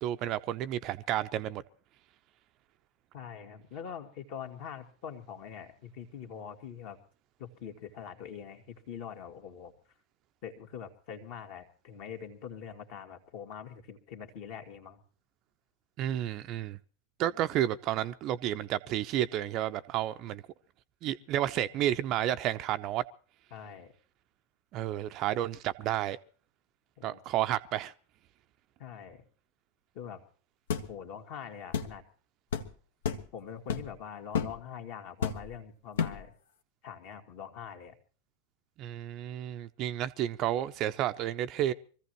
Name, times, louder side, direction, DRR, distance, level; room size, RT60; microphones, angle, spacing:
voice 1, 0.0-1.6 16.0-16.8 17.2-20.4 21.0-23.0 24.7-26.2 27.0-27.9 38.8-41.7, right 12 dB, 35° right, 0.6 m, -31 dB
voice 2, 3.1-7.0 7.4-9.7 10.4-15.0 23.5-23.9 27.0-27.2 28.8-29.2 29.9-30.2 30.9-32.0 33.3-36.3 36.8-38.0, left 8 dB, 45° left, 2.1 m, -44 dB
sound 1, 30.7-30.9 31.7-31.9 32.5-32.7 33.0-33.3 33.7-34.0 34.3-34.6 35.2-35.6 36.0-36.3, left 7 dB, 60° left, 1.2 m, -31 dB
24.5 x 15.0 x 3.1 m
figure-of-eight pair, 90°, 0 cm